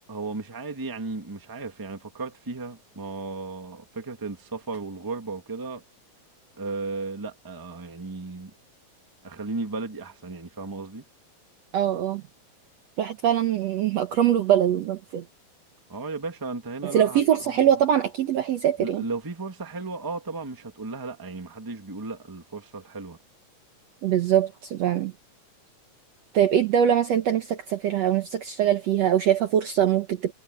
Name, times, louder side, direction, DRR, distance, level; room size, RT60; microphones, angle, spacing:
voice 1, 0.1-5.8 6.5-8.5 9.2-11.0 15.9-17.2 17.5-17.7 18.8-23.2, right 3 dB, 10° right, 1.0 m, -35 dB
voice 2, 11.7-12.2 13.0-15.2 16.8-19.0 24.0-25.1 26.3-30.3, right 10 dB, 65° right, 1.7 m, -23 dB
omnidirectional pair, 4.0 m